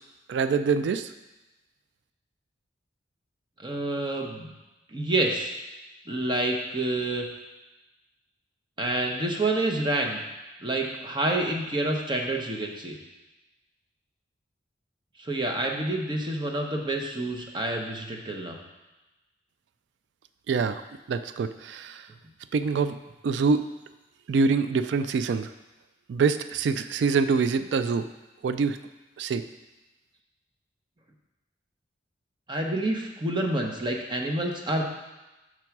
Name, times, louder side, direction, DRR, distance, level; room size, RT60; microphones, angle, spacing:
voice 1, 0.3-1.1 20.5-20.8 21.1-22.1 22.5-23.0 23.2-23.7 24.3-25.5 26.1-28.1 28.4-28.8 29.2-29.5, right 5 dB, 65° right, 12 dB, 0.3 m, -25 dB
voice 2, 3.6-4.5 4.9-5.5 6.1-7.2 8.8-10.2 10.6-13.0 15.2-18.6 32.5-34.8, right 2 dB, 25° right, 2 dB, 0.8 m, -28 dB
6.1 x 4.6 x 5.9 m, 1.1 s
head